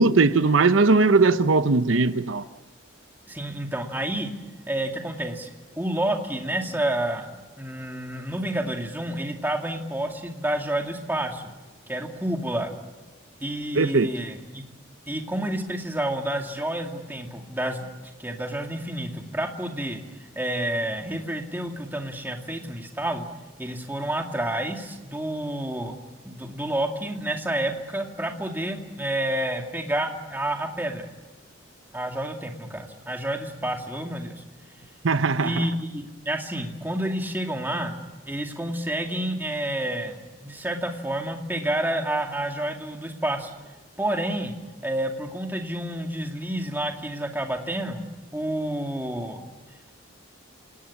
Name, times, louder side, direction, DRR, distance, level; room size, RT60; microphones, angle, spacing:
voice 1, 0.0-2.4 13.7-14.1 35.0-35.6, right 3 dB, 75° right, 0.8 m, -19 dB
voice 2, 3.3-4.3 4.7-11.4 11.9-12.7 13.4-14.6 15.1-17.9 18.2-20.0 20.3-23.3 23.6-25.9 26.2-31.1 31.9-34.3 35.4-37.9 38.3-43.5 44.0-44.6 44.8-48.0 48.3-49.5, right 1 dB, 10° right, 2.3 m, -29 dB
27.5 x 19.0 x 8.6 m
head